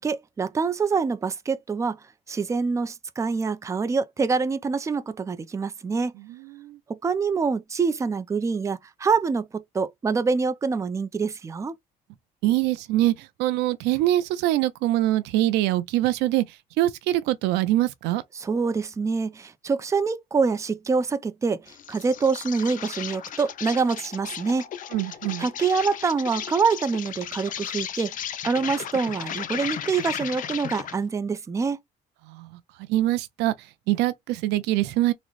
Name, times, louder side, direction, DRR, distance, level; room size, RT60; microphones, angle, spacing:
voice 1, 0.0-2.0 2.3-6.1 6.9-11.7 18.4-24.6 25.4-28.1 28.4-31.8, right 5 dB, 20° right, 0.4 m, -25 dB
voice 2, 6.3-6.8 12.4-18.2 24.9-25.5 32.3-32.5 32.9-35.1, right 15 dB, 90° right, 0.4 m, -24 dB
Insect, 21.7-31.0, left 9 dB, 50° left, 0.5 m, -35 dB
3.9 x 2.0 x 3.0 m
cardioid pair, 110°, 17 cm